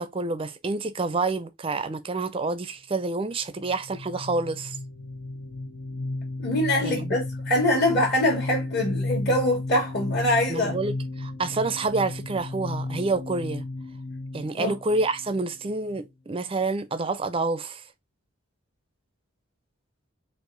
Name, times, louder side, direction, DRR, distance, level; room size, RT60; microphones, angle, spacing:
voice 1, 0.0-4.8 6.8-7.2 10.5-13.6 14.3-17.8, right 3 dB, 25° right, 0.4 m, -28 dB
sound 1, 3.5-16.0, left 2 dB, 75° left, 1.0 m, -34 dB
voice 2, 6.4-10.7 14.5-14.7, left 1 dB, 50° left, 1.5 m, -24 dB
4.6 x 2.5 x 3.8 m
head